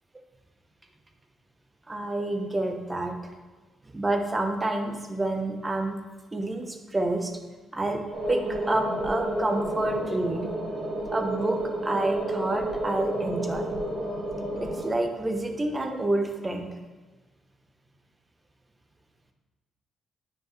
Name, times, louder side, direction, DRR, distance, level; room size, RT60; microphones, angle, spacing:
voice 1, 1.9-3.1 3.9-6.0 6.3-7.3 7.7-8.0 8.3-10.5 11.1-13.7 14.6-16.7, right 2 dB, 20° right, 4 dB, 0.9 m, -28 dB
sound 1, 8.1-14.9, right 1 dB, 35° right, 1.6 m, -31 dB
9.2 x 4.4 x 3.2 m, 1.3 s
cardioid pair, 90°, 0 cm